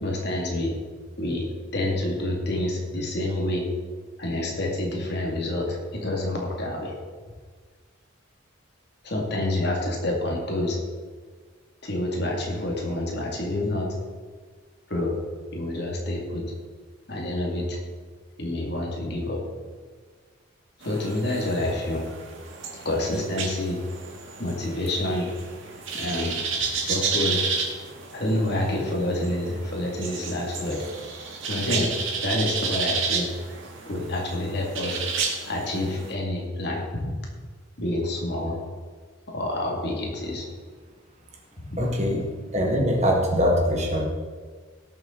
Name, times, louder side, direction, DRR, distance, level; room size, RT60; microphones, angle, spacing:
voice 1, 0.0-0.7 1.2-1.5 1.7-3.7 4.2-7.0 9.0-10.8 11.8-13.9 14.9-15.2 15.5-16.4 17.1-17.8 18.4-19.4 20.8-22.1 22.8-23.8 24.4-25.3 25.9-26.4 26.9-27.5 28.1-30.9 31.5-31.9 32.2-33.3 33.9-35.0 35.5-37.2 37.8-38.6 39.3-40.5, left 1 dB, 50° left, -1 dB, 2.4 m, -28 dB
sound 1, 20.8-36.1, right 5 dB, 70° right, 1.9 m, -32 dB
voice 2, 41.8-42.2 42.5-44.0, equal, 35° right, 0 dB, 1.7 m, -22 dB
18.0 x 7.1 x 3.9 m, 1.5 s
head